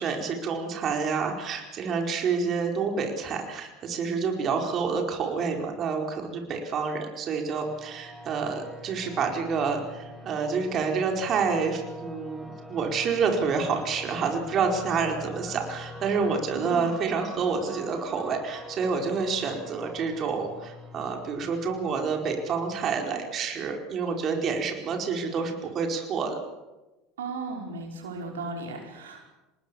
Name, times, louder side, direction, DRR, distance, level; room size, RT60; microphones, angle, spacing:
voice 1, 0.0-26.4, right 5 dB, 45° right, 3 dB, 4.8 m, -28 dB
sound 1, 7.5-22.9, left 1 dB, 10° right, 7.1 m, -44 dB
voice 2, 16.5-16.9 27.2-29.3, right 3 dB, 85° right, 2 dB, 5.3 m, -36 dB
27.0 x 20.5 x 7.2 m, 1.1 s
hypercardioid pair, 75°, 0 cm